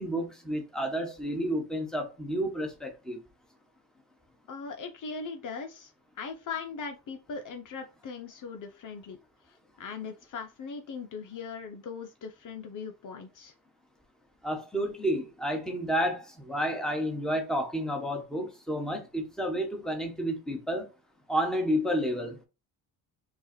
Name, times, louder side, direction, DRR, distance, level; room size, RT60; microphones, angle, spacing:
voice 1, 0.0-3.2 14.4-20.9 21.3-22.4, equal, ahead, 1.3 m, -30 dB
voice 2, 4.5-5.9 6.2-9.2 9.8-13.5, left 5 dB, 55° left, 0.8 m, -39 dB
4.5 x 2.4 x 4.4 m
cardioid pair, 85°, 38 cm